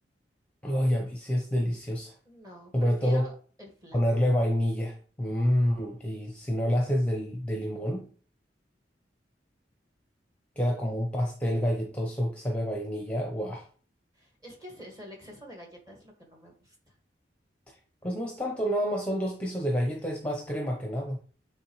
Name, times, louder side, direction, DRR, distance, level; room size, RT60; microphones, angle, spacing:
voice 1, 0.6-2.1 2.7-3.3 3.9-8.1 10.6-13.7 18.0-21.2, equal, 5° left, 1 dB, 0.8 m, -28 dB
voice 2, 2.3-4.0 14.1-17.0, equal, 20° right, 0 dB, 1.9 m, -47 dB
8.6 x 3.5 x 3.2 m, 0.42 s
head